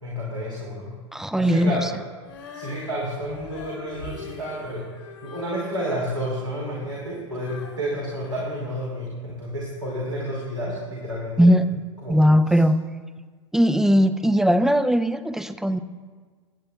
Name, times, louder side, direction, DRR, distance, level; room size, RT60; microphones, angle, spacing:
voice 1, 0.0-0.9 1.4-1.9 2.5-4.8 5.2-11.5 12.0-12.2, equal, 90° right, -6 dB, 2.3 m, -30 dB
voice 2, 1.1-1.7 11.4-11.7 12.1-12.8 13.5-15.8, equal, 5° right, 11 dB, 0.5 m, -19 dB
Female singing, 2.2-9.3 9.9-10.0, left 4 dB, 75° left, 2.4 m, -44 dB
24.0 x 8.7 x 2.3 m, 1.5 s
figure-of-eight pair, 85°, 16 cm